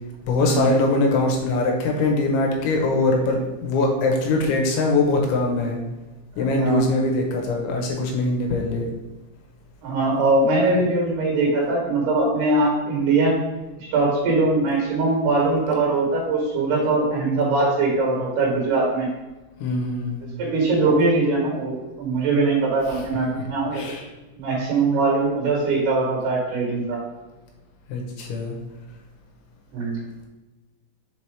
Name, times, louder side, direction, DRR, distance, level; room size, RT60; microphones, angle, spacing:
voice 1, 0.2-5.8 6.4-8.9 19.6-20.2 23.7-24.1 27.9-28.6, left 2 dB, 80° left, 1 dB, 3.3 m, -22 dB
voice 2, 6.3-6.8 9.8-13.4 13.8-19.1 20.4-23.8 24.4-27.0 29.7-30.0, right 3 dB, 65° right, -3 dB, 3.3 m, -21 dB
7.3 x 3.0 x 4.8 m, 1.1 s
omnidirectional pair, 5.3 m